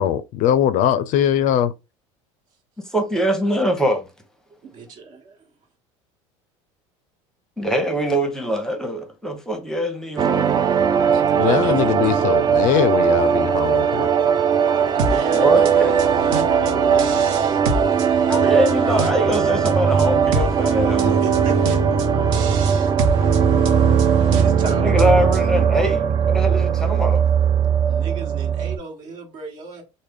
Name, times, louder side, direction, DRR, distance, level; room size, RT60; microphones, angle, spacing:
voice 1, 0.0-1.7 11.4-14.1, left 10 dB, 55° left, 0.4 m, -20 dB
voice 2, 2.9-4.1 7.6-10.7 15.3-15.9 18.3-21.2 24.8-27.2, equal, 5° left, 0.8 m, -23 dB
voice 3, 4.6-5.5 11.1-12.3 14.9-18.5 21.0-21.9 23.0-23.5 24.4-25.8 27.9-29.8, right 4 dB, 55° right, 1.3 m, -34 dB
sound 1, 10.2-28.8, right 7 dB, 25° right, 0.4 m, -19 dB
sound 2, 15.0-25.6, right 6 dB, 75° right, 0.7 m, -24 dB
3.3 x 2.1 x 3.5 m
supercardioid pair, 95°, 16 cm